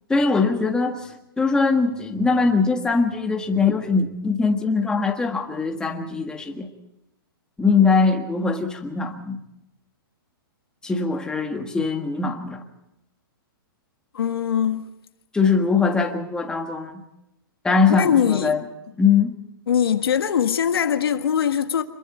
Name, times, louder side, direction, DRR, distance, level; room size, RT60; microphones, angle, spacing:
voice 1, 0.1-1.0 1.4-6.7 7.6-9.4 10.8-12.6 15.3-17.0 17.6-18.6 19.0-19.3, left 4 dB, 5° left, 1.7 m, -21 dB
voice 2, 14.1-14.9 17.9-18.5 19.7-21.8, left 8 dB, 85° left, 1.6 m, -21 dB
26.5 x 22.5 x 4.4 m
hypercardioid pair, 150°, 12 cm